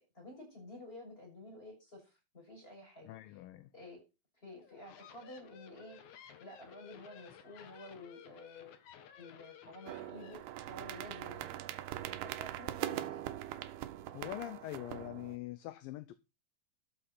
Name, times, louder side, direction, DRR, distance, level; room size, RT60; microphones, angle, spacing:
voice 1, 0.1-3.2 3.7-4.0 4.4-8.7 9.1-10.4 10.7-11.7 12.0-13.2, left 2 dB, 15° left, 7.0 m, -51 dB
voice 2, 3.0-3.7 14.1-16.2, left 17 dB, 75° left, 2.2 m, -43 dB
sound 1, 4.6-10.3, left 8 dB, 60° left, 2.3 m, -55 dB
sound 2, 9.9-15.4, right 13 dB, 85° right, 2.7 m, -42 dB
13.0 x 6.7 x 5.7 m
omnidirectional pair, 4.4 m